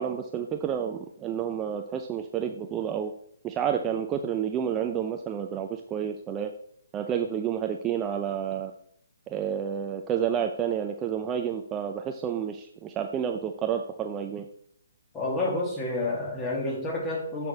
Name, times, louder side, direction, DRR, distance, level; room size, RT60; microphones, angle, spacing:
voice 1, 0.0-3.1 3.4-6.5 6.9-8.7 9.3-14.5, right 8 dB, 20° right, 5 dB, 0.6 m, -30 dB
voice 2, 15.1-17.5, left 2 dB, 15° left, -1 dB, 2.4 m, -29 dB
10.5 x 6.1 x 3.5 m, 0.67 s
figure-of-eight pair, 140°, 0 cm